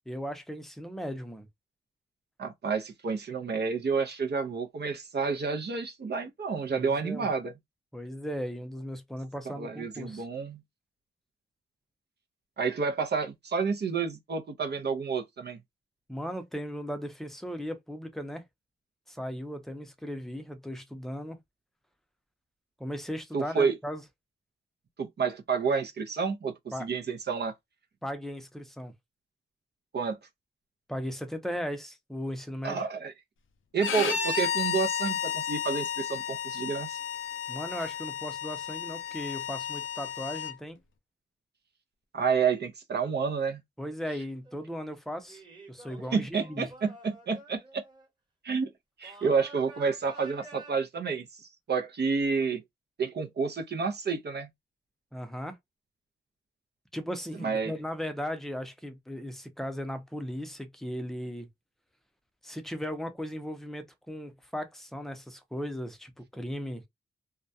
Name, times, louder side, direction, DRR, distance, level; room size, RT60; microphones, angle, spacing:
voice 1, 0.1-1.5 6.7-7.3 7.9-10.3 16.1-18.4 19.1-21.4 22.8-24.0 26.7-26.9 28.0-28.9 30.9-32.9 37.5-40.8 43.8-45.4 45.7-46.7 55.1-55.6 56.9-61.5 62.4-66.8, equal, ahead, 0.6 m, -37 dB
voice 2, 2.4-7.5 9.5-10.6 12.6-15.6 23.3-23.7 25.0-26.5 26.8-27.5 29.9-30.2 32.6-33.1 33.7-37.0 42.1-43.6 46.1-47.8 48.4-48.7 49.0-51.2 51.7-52.6 53.0-54.5 57.4-57.7, right 5 dB, 55° right, 0.5 m, -29 dB
Bowed string instrument, 33.8-40.5, left 8 dB, 70° left, 0.5 m, -33 dB
sound 1, 44.4-44.8 45.3-48.1 49.0-50.7, right 2 dB, 20° right, 1.1 m, -49 dB
2.2 x 2.2 x 2.5 m
wide cardioid pair, 90°, 21 cm